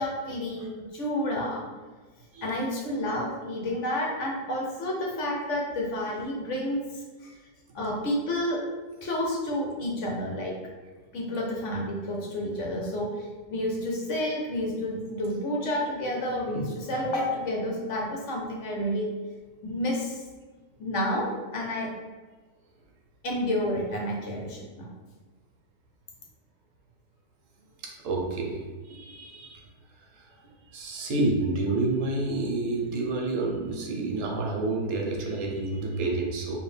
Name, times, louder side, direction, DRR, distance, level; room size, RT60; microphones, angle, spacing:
voice 1, 0.0-1.7 2.4-6.8 7.2-7.3 7.7-8.6 9.0-10.5 11.1-19.1 19.6-20.2 20.8-21.9 23.2-24.9, left 1 dB, 50° left, -2 dB, 1.1 m, -30 dB
voice 2, 28.0-29.6 30.7-36.6, right 2 dB, 60° right, 0 dB, 1.0 m, -29 dB
4.4 x 2.8 x 3.4 m, 1.3 s
omnidirectional pair, 1.8 m